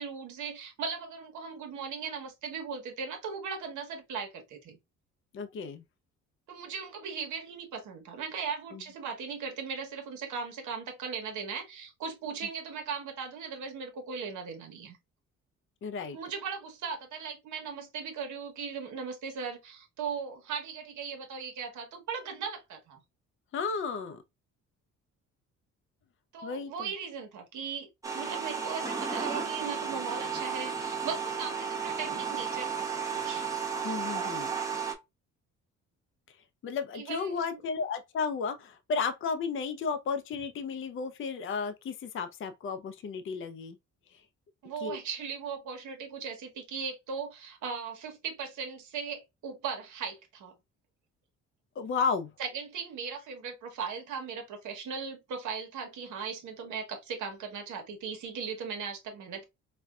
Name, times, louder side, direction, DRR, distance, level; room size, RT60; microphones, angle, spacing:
voice 1, 0.0-4.8 6.5-15.0 16.1-23.0 26.3-27.9 28.1-33.4 36.9-37.6 44.6-50.5 52.4-59.5, right 6 dB, 75° right, 1.1 m, -38 dB
voice 2, 5.3-5.8 8.7-8.8 15.8-16.2 23.5-24.2 26.4-26.9 33.8-34.5 36.6-43.8 44.8-45.0 51.8-52.3, left 5 dB, 45° left, 0.5 m, -33 dB
sound 1, 28.0-34.9, right 6 dB, 10° right, 0.8 m, -33 dB
4.1 x 2.2 x 2.3 m
cardioid pair, 90°, 30 cm